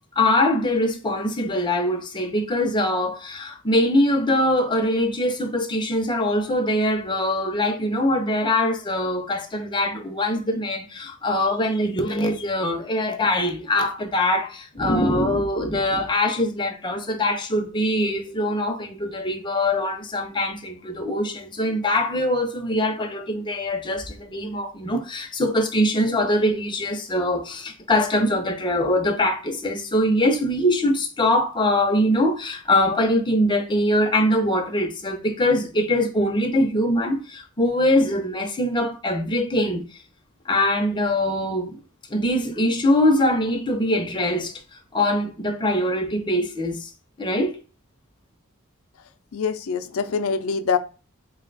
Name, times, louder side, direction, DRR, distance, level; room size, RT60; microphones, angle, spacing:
voice 1, 0.1-40.0 40.5-41.8 42.1-44.6 44.9-46.9 47.2-47.6, left 1 dB, 20° left, 0.7 m, -23 dB
voice 2, 49.3-50.8, left 5 dB, 75° left, 0.5 m, -24 dB
3.8 x 2.2 x 4.0 m
head